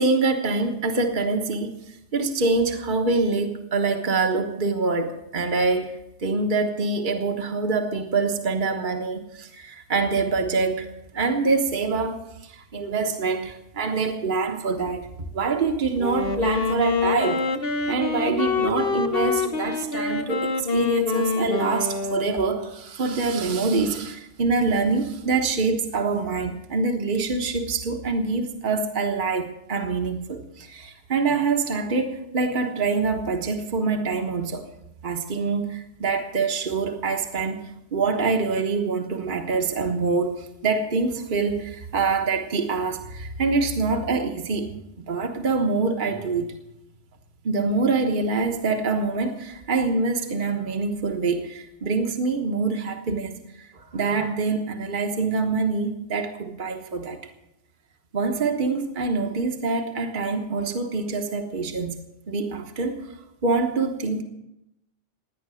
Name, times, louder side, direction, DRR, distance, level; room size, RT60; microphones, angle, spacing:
voice 1, 0.0-1.8 2.1-10.9 11.1-15.1 15.3-17.4 17.9-34.7 35.0-44.7 45.1-46.5 47.4-57.2 58.1-61.9 62.3-63.0 63.4-64.2, right 4 dB, 45° right, 4 dB, 1.4 m, -25 dB
Wind instrument woodwind instrument, 16.0-22.7, left 4 dB, 55° left, 1.3 m, -26 dB
17.5 x 10.5 x 6.4 m, 0.86 s
omnidirectional pair, 1.2 m